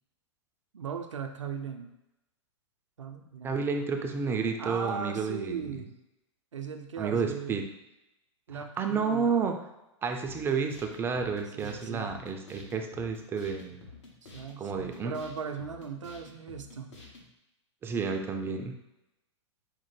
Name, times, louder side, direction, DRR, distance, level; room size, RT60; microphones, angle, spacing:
voice 1, 0.7-1.9 3.0-3.8 4.6-6.0 6.5-7.6 8.5-9.3 11.5-12.2 14.2-16.9, right 6 dB, 85° right, 5 dB, 0.4 m, -38 dB
voice 2, 3.4-5.7 7.0-7.6 8.5-9.6 10.0-13.8 14.6-15.1 17.8-18.8, right 5 dB, 15° right, 4 dB, 0.3 m, -31 dB
sound 1, 10.3-17.3, left 3 dB, 70° left, 1.2 m, -50 dB
5.0 x 2.1 x 3.1 m, 0.93 s
hypercardioid pair, 105°, 16 cm